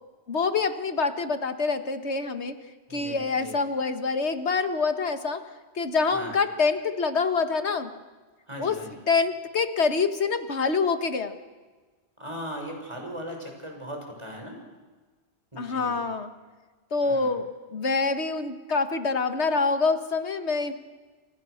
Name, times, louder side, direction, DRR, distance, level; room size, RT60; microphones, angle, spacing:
voice 1, 0.3-2.6 2.9-5.4 5.8-7.9 8.6-8.8 9.1-11.3 15.6-16.3 16.9-20.7, left 4 dB, 85° left, 9 dB, 1.9 m, -26 dB
voice 2, 2.9-3.6 6.1-6.3 8.5-8.9 12.2-14.6 15.5-16.0 17.0-17.3, equal, 25° right, 1 dB, 7.0 m, -38 dB
29.0 x 26.0 x 6.6 m, 1.3 s
omnidirectional pair, 1.1 m